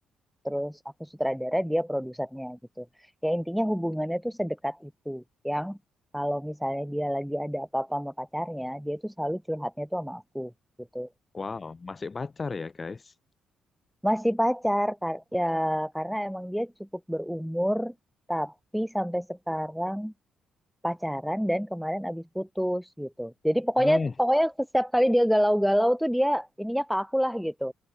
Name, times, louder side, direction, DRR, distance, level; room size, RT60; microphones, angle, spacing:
voice 1, 0.4-2.9 3.2-5.8 6.1-10.5 10.9-11.1 14.0-17.9 18.3-20.1 20.8-27.7, equal, ahead, 1.1 m, -28 dB
voice 2, 11.3-13.1 23.8-24.1, left 4 dB, 35° left, 0.9 m, -33 dB
open air
hypercardioid pair, 45°, 0 cm